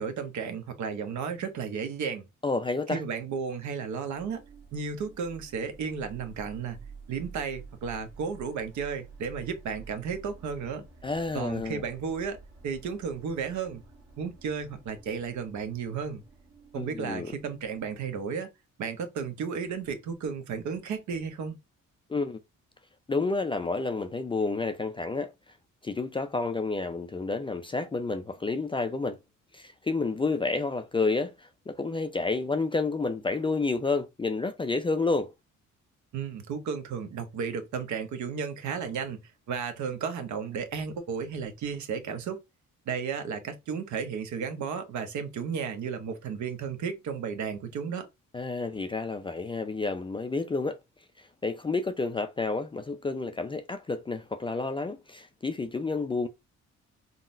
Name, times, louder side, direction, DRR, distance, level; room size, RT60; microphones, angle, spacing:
voice 1, 0.0-2.3 2.9-4.4 4.7-6.8 7.1-10.9 11.3-12.4 12.6-13.8 14.2-16.2 16.7-18.5 18.8-21.6 36.1-42.4 42.9-48.1, right 6 dB, 70° right, 0.8 m, -33 dB
voice 2, 2.4-3.0 11.0-11.8 16.8-17.3 22.1-22.4 23.1-25.3 25.8-29.2 29.5-35.3 48.3-50.8 51.2-56.3, left 3 dB, 20° left, 0.3 m, -30 dB
sound 1, 4.1-18.2, right 5 dB, 55° right, 1.1 m, -50 dB
3.7 x 2.1 x 2.5 m
cardioid pair, 90°, 30 cm